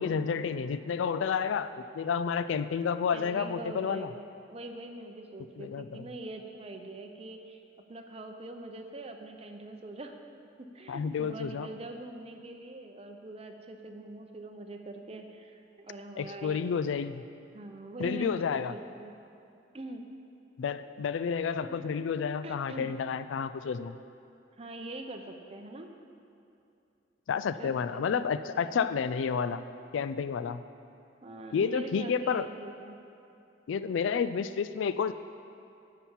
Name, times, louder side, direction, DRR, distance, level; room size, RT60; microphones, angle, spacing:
voice 1, 0.0-4.1 5.6-6.0 10.9-11.7 16.2-17.2 18.0-18.7 20.6-24.0 27.3-29.6 29.9-30.6 31.5-32.5 33.7-35.1, left 6 dB, 90° left, 12 dB, 0.3 m, -30 dB
voice 2, 3.1-4.2 4.5-7.6 7.9-10.2 10.6-16.6 17.5-19.1 19.7-20.0 21.6-21.8 22.4-22.9 24.6-25.9 27.6-28.0 28.4-28.7 31.2-33.0, right 2 dB, 35° right, 4 dB, 0.7 m, -43 dB
10.0 x 5.7 x 7.3 m, 2.7 s
head